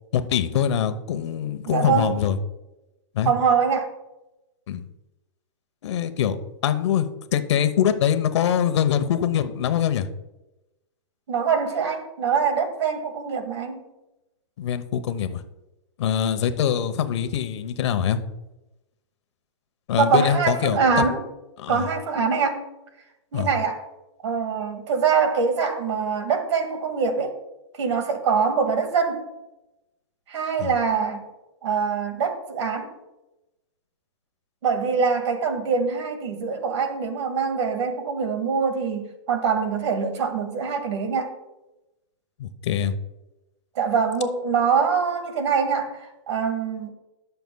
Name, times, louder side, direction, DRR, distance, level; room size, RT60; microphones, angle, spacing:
voice 1, 0.1-2.4 3.1-3.3 4.7-4.8 5.8-6.4 6.6-7.1 7.3-10.1 14.6-15.4 16.0-18.2 19.9-21.1 21.6-21.9 23.3-23.5 30.6-30.7 42.4-42.9, left 9 dB, 70° left, 10 dB, 0.9 m, -23 dB
voice 2, 1.7-2.2 3.2-3.9 11.3-13.8 19.9-21.2 21.7-22.6 23.3-23.8 24.2-27.4 27.7-29.2 30.3-31.2 31.6-32.9 34.6-41.3 43.8-46.9, right 6 dB, 75° right, 6 dB, 1.9 m, -24 dB
20.5 x 6.8 x 2.3 m, 1.0 s
supercardioid pair, 155°, 15 cm